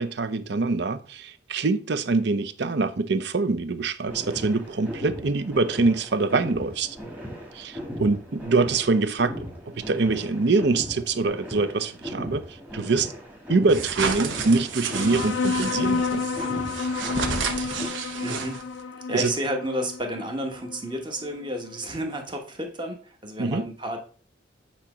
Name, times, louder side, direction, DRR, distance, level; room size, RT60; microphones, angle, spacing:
voice 1, 0.0-7.0 7.5-13.1 13.5-16.2 19.1-19.3 23.4-23.7, right 3 dB, 60° right, 0.6 m, -24 dB
sound 1, 4.0-17.9, equal, 10° right, 1.5 m, -38 dB
sound 2, 13.7-18.8, right 5 dB, 75° right, 0.9 m, -31 dB
sound 3, 14.9-21.9, left 4 dB, 75° left, 0.4 m, -30 dB
voice 2, 18.2-18.6 18.8-24.0, equal, 25° right, 1.1 m, -31 dB
8.5 x 3.0 x 4.9 m
head